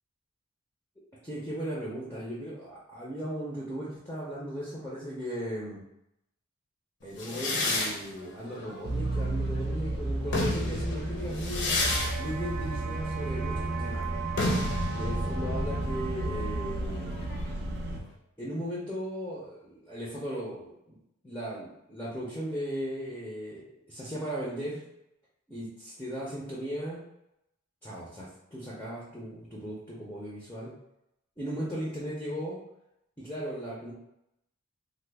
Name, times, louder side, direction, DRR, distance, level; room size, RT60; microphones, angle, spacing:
voice 1, 1.2-5.8 7.0-11.8 12.2-14.1 15.0-17.5 18.4-21.0 21.2-24.8 25.5-27.0 27.8-30.7 31.4-32.6 33.2-33.9, equal, 10° left, -7 dB, 0.5 m, -37 dB
sound 1, 7.2-9.7 10.1-17.6, left 2 dB, 55° left, 0.6 m, -33 dB
sound 2, 8.8-18.0, right 1 dB, 50° right, 0.4 m, -33 dB
sound 3, 11.7-16.7, right 6 dB, 90° right, 0.7 m, -39 dB
3.1 x 2.1 x 3.3 m, 0.82 s
head